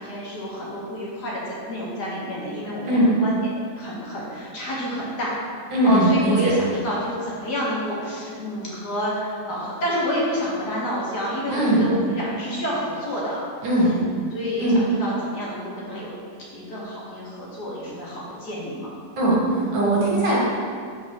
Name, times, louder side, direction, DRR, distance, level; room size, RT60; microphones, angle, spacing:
voice 1, 0.0-3.4 3.7-5.4 5.8-13.4 13.8-14.0 14.3-16.1 16.5-18.9, equal, 60° left, -6 dB, 2.1 m, -29 dB
voice 2, 5.7-6.5 11.5-11.9 13.6-13.9 14.6-14.8 19.2-20.4, right 1 dB, 70° right, -5 dB, 2.1 m, -19 dB
5.2 x 4.9 x 6.1 m, 2.2 s
omnidirectional pair, 2.0 m